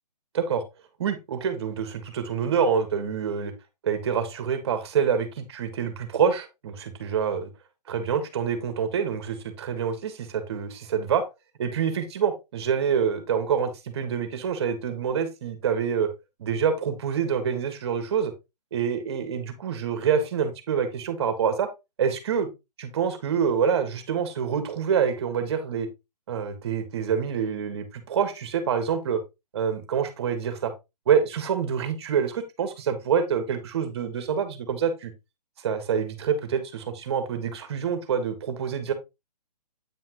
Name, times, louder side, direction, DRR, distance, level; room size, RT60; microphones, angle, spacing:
voice 1, 1.0-3.5 3.8-7.5 7.9-11.2 11.6-16.1 16.4-18.3 18.7-21.7 22.0-22.5 22.8-25.9 26.3-29.2 29.5-30.7 31.0-35.1 35.6-38.9, right 7 dB, 40° right, 1.7 m, -26 dB
9.0 x 5.8 x 3.1 m
hypercardioid pair, 165°, 21 cm